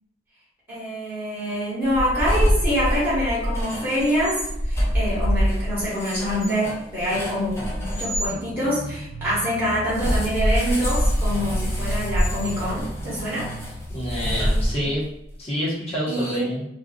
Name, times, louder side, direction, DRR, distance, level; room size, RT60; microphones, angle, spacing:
voice 1, 0.7-13.5 16.1-16.6, equal, 10° right, -11 dB, 1.1 m, -25 dB
sound 1, 1.9-8.3 9.9-15.1, equal, 15° left, 0.6 m, -25 dB
sound 2, 8.3-14.5, right 1 dB, 45° right, 0.3 m, -37 dB
voice 2, 13.9-15.0 15.4-16.7, equal, 35° left, -6 dB, 0.9 m, -28 dB
2.5 x 2.3 x 2.3 m, 0.80 s
head